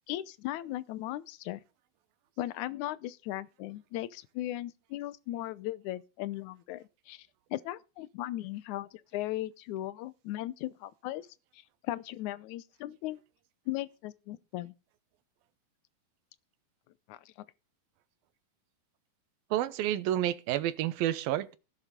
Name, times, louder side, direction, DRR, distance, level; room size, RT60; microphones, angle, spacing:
voice 1, 0.1-1.6 2.4-11.3 11.5-13.2 13.7-14.7 17.1-17.3, left 15 dB, 75° left, 1.9 m, -37 dB
voice 2, 19.5-21.6, right 13 dB, 85° right, 2.8 m, -30 dB
17.0 x 7.2 x 5.1 m
omnidirectional pair, 4.1 m